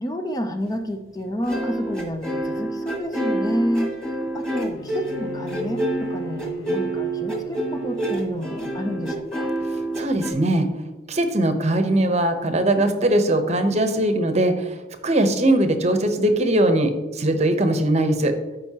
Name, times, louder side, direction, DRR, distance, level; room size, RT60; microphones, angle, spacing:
voice 1, 0.0-9.5, equal, 20° left, 6 dB, 0.5 m, -29 dB
sound 1, 1.4-10.3, right 1 dB, 5° left, 1.6 m, -27 dB
Bowed string instrument, 4.7-9.2, left 2 dB, 85° left, 0.9 m, -39 dB
voice 2, 9.7-10.7 11.1-14.8 15.0-18.3, right 1 dB, 35° right, 7 dB, 0.8 m, -20 dB
13.0 x 5.3 x 2.8 m, 1.2 s
head